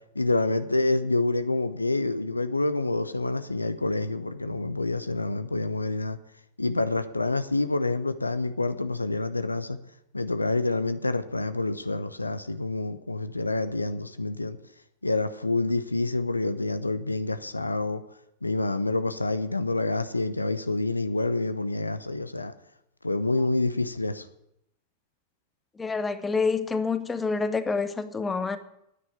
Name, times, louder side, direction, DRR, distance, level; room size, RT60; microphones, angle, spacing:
voice 1, 0.1-6.2 6.6-9.8 10.1-14.6 15.0-18.0 18.4-22.5 23.0-24.3, left 2 dB, 85° left, 11 dB, 0.8 m, -27 dB
voice 2, 25.8-28.6, left 4 dB, 15° left, 11 dB, 1.0 m, -27 dB
9.9 x 9.7 x 9.0 m, 0.79 s
figure-of-eight pair, 90°, 0 cm